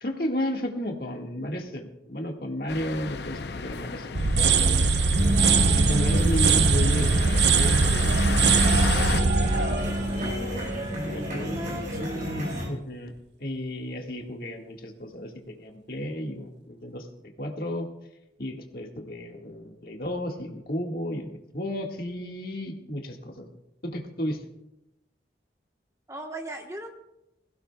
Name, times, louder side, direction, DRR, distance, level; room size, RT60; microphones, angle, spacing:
voice 1, 0.0-4.9 5.3-11.6 12.7-13.1 13.4-17.1 17.4-17.9 18.4-23.5 23.8-24.4, equal, 55° left, 2 dB, 1.7 m, -33 dB
sound 1, 2.7-9.2, left 4 dB, 75° left, 0.6 m, -34 dB
sound 2, 4.1-11.0, right 4 dB, 80° right, 0.7 m, -22 dB
sound 3, 5.2-12.7, equal, 50° right, 4.4 m, -29 dB
voice 2, 11.3-12.6 26.1-26.9, right 1 dB, 20° right, 3 dB, 1.1 m, -37 dB
21.5 x 16.0 x 2.3 m, 0.90 s
head